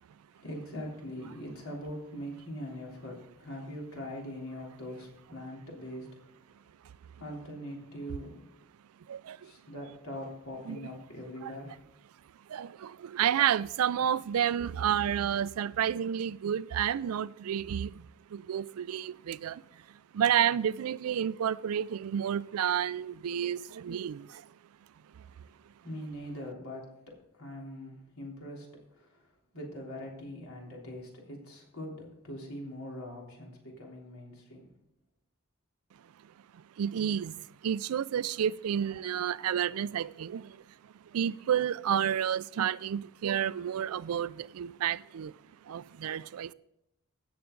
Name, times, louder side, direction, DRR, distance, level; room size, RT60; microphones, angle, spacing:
voice 1, 0.3-6.1 7.1-8.4 9.4-11.8 25.4-25.5 25.8-34.7, equal, 80° left, 3.4 m, -42 dB
voice 2, 9.1-9.5 10.7-10.8 11.4-11.5 12.5-18.1 18.3-19.6 20.1-24.4 36.8-40.6 41.1-45.3 45.7-46.5, right 9 dB, 85° right, 0.4 m, -30 dB
16.5 x 7.0 x 3.8 m
head